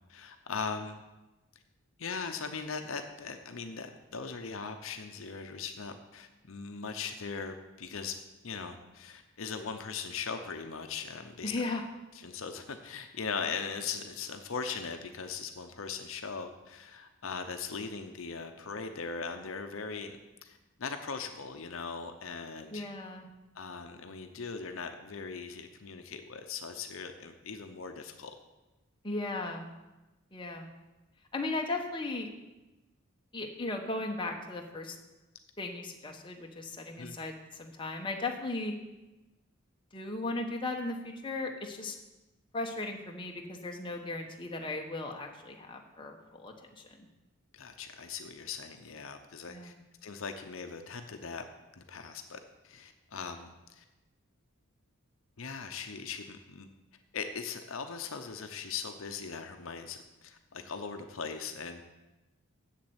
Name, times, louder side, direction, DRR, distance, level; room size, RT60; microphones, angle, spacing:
voice 1, 0.1-1.0 2.0-8.2 8.4-11.5 12.1-20.2 20.4-22.8 23.6-28.3 37.0-37.1 47.5-49.7 50.0-51.4 51.8-53.8 55.4-56.7 57.1-61.8, left 5 dB, 65° left, 6 dB, 0.7 m, -39 dB
voice 2, 11.4-11.8 22.7-23.3 29.0-29.6 30.3-30.7 31.3-32.3 33.3-35.0 35.6-38.7 39.9-42.0 42.5-47.1 49.5-49.8, left 2 dB, 25° left, 2 dB, 1.0 m, -36 dB
7.6 x 7.3 x 8.0 m, 1.1 s
head